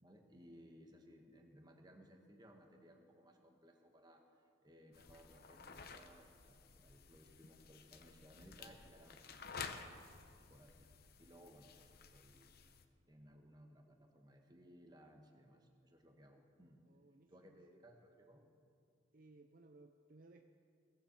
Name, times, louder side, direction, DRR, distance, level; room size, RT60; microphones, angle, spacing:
voice 1, 0.0-4.2 4.6-10.0 10.5-10.9 11.2-12.5 13.1-16.8 17.3-18.4, equal, 20° right, 3 dB, 1.3 m, -62 dB
sound 1, 4.9-12.9, left 5 dB, 50° left, 0.8 m, -53 dB
voice 2, 16.9-17.6 19.1-20.4, right 2 dB, 45° right, 5 dB, 0.5 m, -62 dB
18.0 x 7.3 x 7.4 m, 2.4 s
head